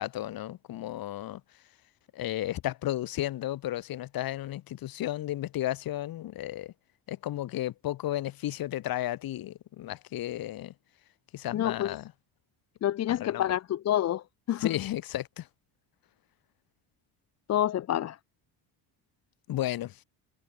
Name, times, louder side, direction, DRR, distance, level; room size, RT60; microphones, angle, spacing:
voice 1, 0.0-1.4 2.1-6.7 7.1-10.7 11.3-12.1 13.1-13.5 14.6-15.5 19.5-20.0, left 14 dB, 60° left, 6.8 m, -33 dB
voice 2, 11.5-11.9 12.8-14.7 17.5-18.2, left 12 dB, 40° left, 0.9 m, -28 dB
cardioid pair, 175°, 40 cm